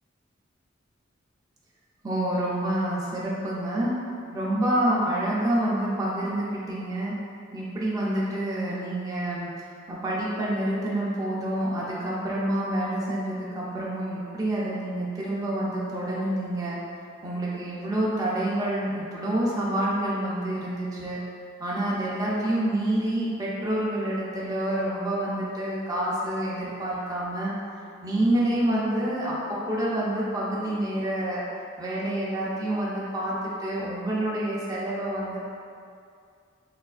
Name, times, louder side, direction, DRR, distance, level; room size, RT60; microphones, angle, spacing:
voice 1, 2.0-3.9 4.3-7.2 7.5-9.5 9.9-16.8 17.2-21.2 21.6-27.5 28.0-31.4 31.8-35.4, right 1 dB, 20° right, -7 dB, 0.4 m, -27 dB
4.1 x 2.4 x 2.3 m, 2.3 s
head